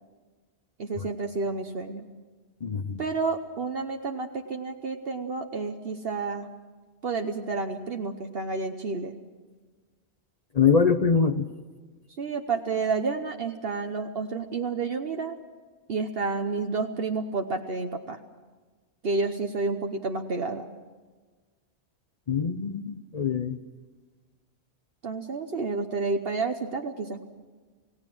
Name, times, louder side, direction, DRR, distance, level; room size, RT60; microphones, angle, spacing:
voice 1, 0.8-2.1 3.0-6.5 7.0-9.2 12.2-15.4 15.9-18.2 19.0-20.7 25.0-27.2, right 4 dB, 60° right, 5 dB, 1.2 m, -30 dB
voice 2, 2.6-3.0 10.5-11.5 22.3-23.6, left 6 dB, 40° left, 8 dB, 0.8 m, -24 dB
28.0 x 17.5 x 6.2 m, 1.4 s
omnidirectional pair, 1.1 m